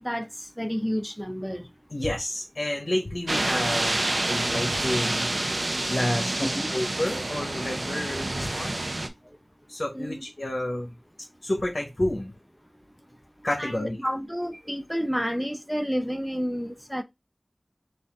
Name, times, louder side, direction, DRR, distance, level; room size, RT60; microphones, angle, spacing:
voice 1, 0.6-1.7 6.4-6.7 9.9-10.2 13.6-17.0, equal, ahead, 0.5 m, -30 dB
voice 2, 1.9-4.0 4.3-5.3 5.9-8.8 9.7-10.9 11.4-12.3 13.4-14.0, left 1 dB, 55° left, 1.1 m, -30 dB
sound 1, 3.3-9.1, right 2 dB, 70° right, 0.6 m, -28 dB
4.2 x 2.6 x 3.6 m
wide cardioid pair, 50°, 0 cm